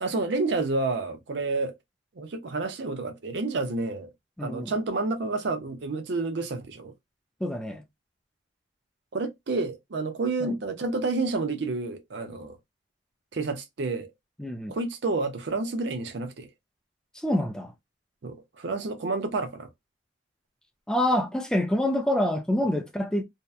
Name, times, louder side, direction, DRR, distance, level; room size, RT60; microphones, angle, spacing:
voice 1, 0.0-1.7 2.2-4.1 4.4-6.9 9.1-12.6 13.3-14.1 14.7-16.5 18.2-19.7 22.6-22.8, right 3 dB, 60° right, 0.5 m, -29 dB
voice 2, 4.4-4.7 7.4-7.8 10.4-10.5 14.4-14.7 17.1-17.7 20.9-23.2, left 1 dB, 5° left, 0.3 m, -26 dB
2.7 x 2.2 x 2.3 m
head